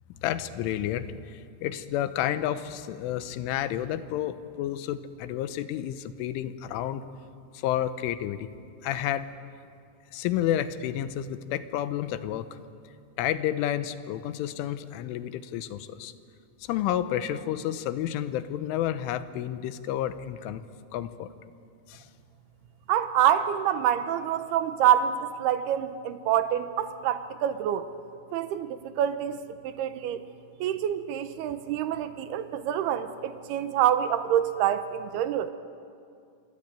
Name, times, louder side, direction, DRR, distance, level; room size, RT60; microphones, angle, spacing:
voice 1, 0.2-7.1 7.5-8.5 8.8-9.3 10.1-12.5 13.2-16.1 16.6-20.6 20.9-21.3 21.9-22.1, left 11 dB, 90° left, 12 dB, 3.5 m, -30 dB
voice 2, 22.9-27.9 28.3-30.2 30.6-35.5, right 10 dB, 75° right, 11 dB, 2.5 m, -26 dB
27.0 x 24.0 x 9.0 m, 2.4 s
omnidirectional pair, 5.5 m